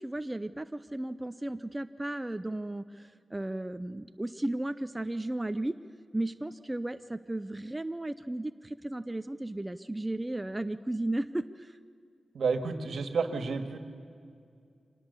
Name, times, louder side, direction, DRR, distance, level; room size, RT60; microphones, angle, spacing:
voice 1, 0.0-5.7 6.1-11.8, right 1 dB, 15° right, 10 dB, 0.5 m, -35 dB
voice 2, 12.3-13.8, right 4 dB, 70° right, 7 dB, 1.8 m, -30 dB
25.0 x 19.0 x 6.8 m, 2.3 s
wide cardioid pair, 115°, 0 cm